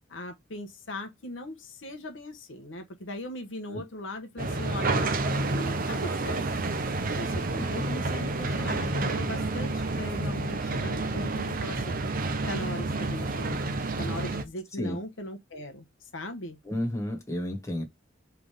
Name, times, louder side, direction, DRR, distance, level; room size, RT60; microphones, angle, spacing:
voice 1, 0.1-6.6 7.1-12.2 12.5-16.6, left 1 dB, 70° left, 1.0 m, -39 dB
sound 1, 4.4-14.4, right 2 dB, 45° right, 0.7 m, -29 dB
voice 2, 16.6-17.8, left 1 dB, 15° left, 1.5 m, -31 dB
3.8 x 3.4 x 3.4 m
head